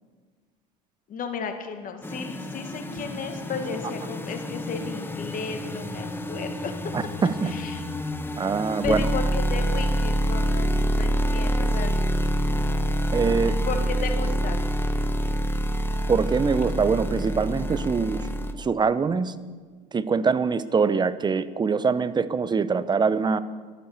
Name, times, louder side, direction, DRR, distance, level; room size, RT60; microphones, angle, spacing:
voice 1, 1.1-6.7 7.4-7.8 8.8-12.0 12.4-12.8 13.7-14.6, left 5 dB, 40° left, 6 dB, 1.9 m, -34 dB
sound 1, 2.0-18.5, equal, 10° left, 1.3 m, -27 dB
voice 2, 6.9-7.5 8.4-9.0 13.1-13.6 16.1-18.3 18.5-19.4 19.9-23.4, right 5 dB, 20° right, 15 dB, 0.7 m, -23 dB
12.0 x 11.5 x 7.2 m, 1.5 s
hypercardioid pair, 80°, 21 cm